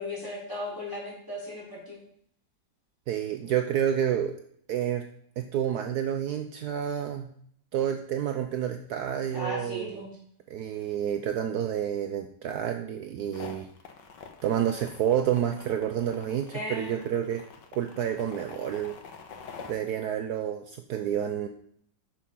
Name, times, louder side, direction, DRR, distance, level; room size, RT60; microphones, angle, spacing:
voice 1, 0.0-2.0 9.3-10.1 16.5-17.0, left 1 dB, 10° left, -5 dB, 4.3 m, -36 dB
voice 2, 3.1-4.4 4.7-5.0 5.4-7.3 7.7-10.0 10.5-13.7 14.4-17.4 17.8-19.0 19.7-21.5, right 9 dB, 70° right, 6 dB, 1.1 m, -29 dB
sound 1, 13.3-19.7, left 6 dB, 80° left, 1.8 m, -46 dB
9.2 x 7.1 x 5.5 m, 0.64 s
omnidirectional pair, 1.9 m